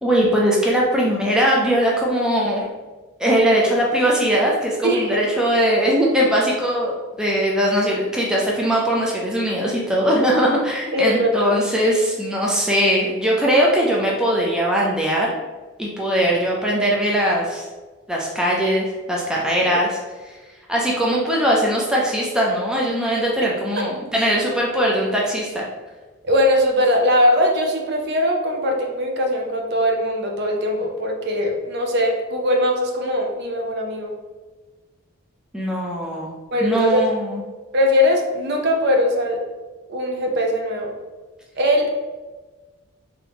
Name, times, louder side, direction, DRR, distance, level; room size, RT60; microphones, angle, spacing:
voice 1, 0.0-2.7 3.2-15.3 15.8-17.7 18.1-20.0 20.3-20.4 20.7-25.6 35.5-36.3 36.6-37.4, equal, 5° right, -4 dB, 0.4 m, -20 dB
voice 2, 4.8-5.2 10.9-11.5 19.6-19.8 26.2-34.1 36.5-37.0 37.7-39.4 39.9-40.9 41.6-41.9, left 1 dB, 50° right, 2 dB, 0.6 m, -20 dB
3.5 x 2.9 x 3.4 m, 1.3 s
head